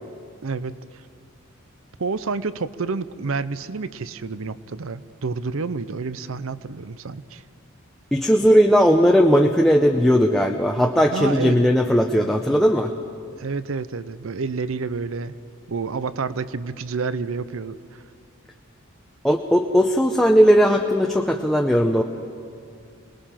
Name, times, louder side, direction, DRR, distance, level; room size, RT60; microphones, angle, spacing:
voice 1, 0.4-1.0 2.0-7.4 11.1-11.7 13.4-15.4 15.7-18.0, right 4 dB, 70° right, 15 dB, 0.6 m, -29 dB
voice 2, 8.1-12.9 19.2-22.0, equal, ahead, 2 dB, 0.6 m, -17 dB
28.0 x 20.0 x 5.8 m, 2.4 s
head